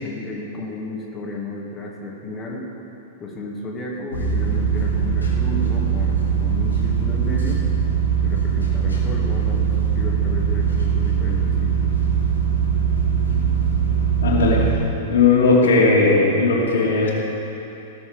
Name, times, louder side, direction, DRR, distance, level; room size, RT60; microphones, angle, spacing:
voice 1, 0.0-2.7 3.2-7.6 8.2-11.9, left 2 dB, 25° left, -2 dB, 2.3 m, -33 dB
sound 1, 4.1-14.7, right 7 dB, 85° left, 2.3 m, -21 dB
voice 2, 14.2-14.8 15.1-17.1, left 3 dB, 70° left, -4 dB, 2.8 m, -17 dB
18.5 x 7.1 x 5.0 m, 2.9 s
figure-of-eight pair, 100°, 0 cm